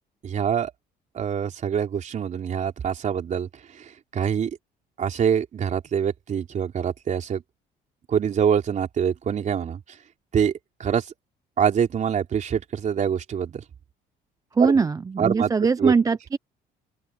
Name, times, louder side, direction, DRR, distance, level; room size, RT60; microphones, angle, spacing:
voice 1, 0.2-0.7 1.1-4.5 5.0-7.4 8.1-9.8 10.3-10.5 10.8-11.1 11.6-13.6 14.6-14.8 15.2-15.5 15.8-15.9, right 8 dB, 45° right, 3.7 m, -25 dB
voice 2, 14.6-16.4, right 5 dB, 20° right, 0.5 m, -21 dB
open air
cardioid pair, 110°, 17 cm